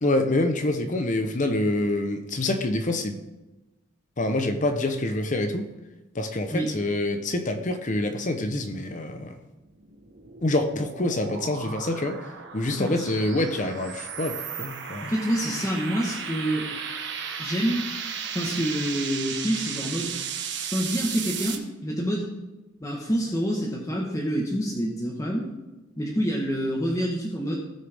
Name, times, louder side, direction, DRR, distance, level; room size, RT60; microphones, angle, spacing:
voice 1, 0.0-3.2 4.2-5.7 6.1-9.3 10.4-12.2 12.5-15.1, left 1 dB, 40° left, 7 dB, 0.9 m, -26 dB
sound 1, 9.5-21.6, right 7 dB, 65° right, 1.3 m, -35 dB
voice 2, 15.0-16.7 17.4-17.9 18.3-20.1 20.7-22.3 22.8-25.5 26.0-27.5, equal, 15° left, -3 dB, 1.4 m, -27 dB
18.5 x 6.5 x 3.6 m, 1.1 s
head